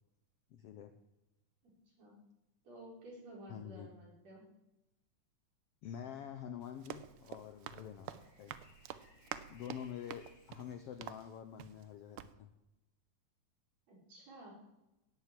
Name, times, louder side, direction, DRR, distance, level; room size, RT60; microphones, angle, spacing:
voice 1, 0.5-0.9 3.5-3.9 5.8-8.1 8.4-8.5 9.5-12.5, left 9 dB, 75° left, 9 dB, 1.4 m, -47 dB
voice 2, 2.6-4.4 13.9-14.5, right 1 dB, 55° right, -3 dB, 5.8 m, -53 dB
sound 1, 5.8-11.3, left 2 dB, 40° left, 3.0 m, -67 dB
Run, 6.6-11.9 12.2-12.3, right 11 dB, 85° right, 1.3 m, -48 dB
18.0 x 7.5 x 7.5 m, 0.97 s
omnidirectional pair, 3.5 m